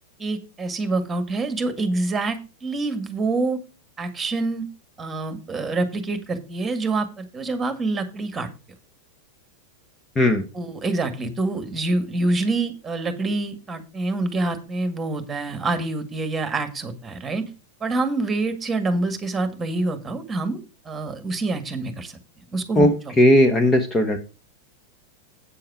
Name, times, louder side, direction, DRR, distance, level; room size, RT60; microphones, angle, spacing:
voice 1, 0.2-3.6 4.0-4.7 5.0-8.5 10.5-17.5 17.8-20.6 20.9-22.2 22.5-22.9, right 2 dB, 15° right, 10 dB, 1.8 m, -26 dB
voice 2, 22.8-24.2, left 1 dB, 15° left, 6 dB, 1.1 m, -17 dB
8.5 x 7.6 x 4.8 m, 0.33 s
figure-of-eight pair, 90°, 0 cm